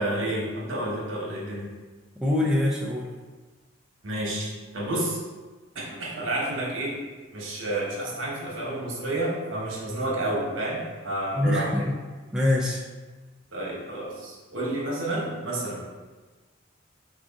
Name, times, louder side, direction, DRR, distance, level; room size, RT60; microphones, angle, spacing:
voice 1, 0.0-1.7 4.0-5.2 5.7-7.0 7.3-11.9 13.5-15.8, right 1 dB, 70° right, -3 dB, 1.1 m, -30 dB
voice 2, 2.2-3.1 11.4-11.8 12.3-12.8, left 1 dB, 5° right, -4 dB, 0.3 m, -24 dB
4.8 x 2.5 x 3.5 m, 1.3 s
head